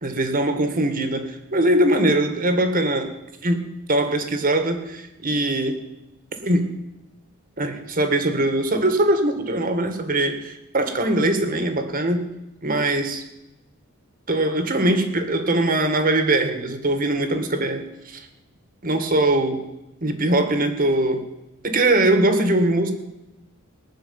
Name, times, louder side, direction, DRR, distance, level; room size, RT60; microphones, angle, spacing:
voice 1, 0.0-3.1 3.4-3.6 3.9-5.8 6.4-6.7 7.6-12.3 12.6-13.2 14.3-18.3 18.8-19.6 20.0-21.2 21.6-22.9, right 1 dB, 40° right, 7 dB, 1.9 m, -21 dB
19.0 x 6.9 x 9.6 m, 0.93 s
head